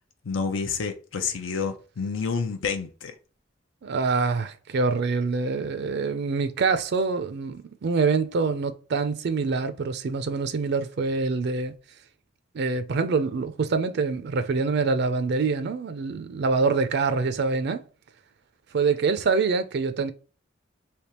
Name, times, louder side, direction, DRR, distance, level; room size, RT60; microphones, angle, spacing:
voice 1, 0.3-3.1, left 5 dB, 90° left, 0.5 m, -29 dB
voice 2, 3.8-11.7 12.5-17.8 18.7-20.1, right 4 dB, 60° right, 0.4 m, -25 dB
3.4 x 2.8 x 2.9 m
head